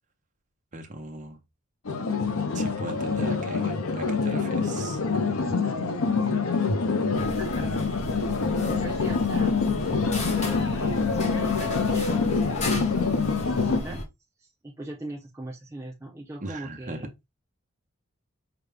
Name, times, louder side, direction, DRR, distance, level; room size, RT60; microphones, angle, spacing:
voice 1, 0.7-1.4 2.5-5.0 13.8-14.0 16.4-17.1, right 2 dB, 35° right, 0.8 m, -39 dB
sound 1, 1.9-13.8, left 4 dB, 80° left, 0.6 m, -26 dB
sound 2, 7.1-14.0, left 1 dB, 30° left, 0.9 m, -35 dB
voice 2, 7.4-7.7 8.8-9.6 10.5-13.1 13.5-14.0 14.4-17.1, right 1 dB, 15° right, 0.4 m, -40 dB
5.1 x 2.2 x 3.3 m
head